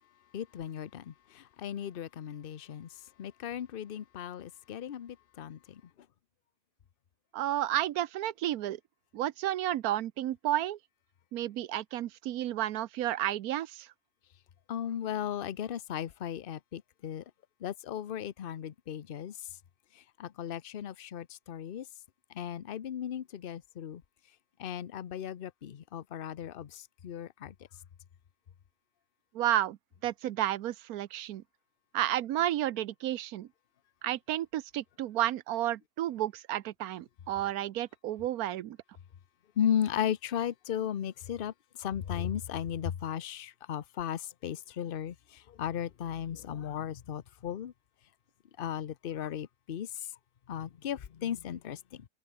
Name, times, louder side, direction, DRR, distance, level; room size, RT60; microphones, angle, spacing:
voice 1, 0.3-5.8 14.7-17.2 17.6-19.4 19.9-21.9 22.3-24.0 24.6-27.5 39.6-47.7 48.6-50.1 50.5-52.1, left 9 dB, 45° left, 0.8 m, -36 dB
voice 2, 7.3-8.8 9.1-10.8 11.3-13.9 29.3-31.4 31.9-33.5 34.0-38.8, right 13 dB, 75° right, 1.1 m, -32 dB
omnidirectional pair, 1.6 m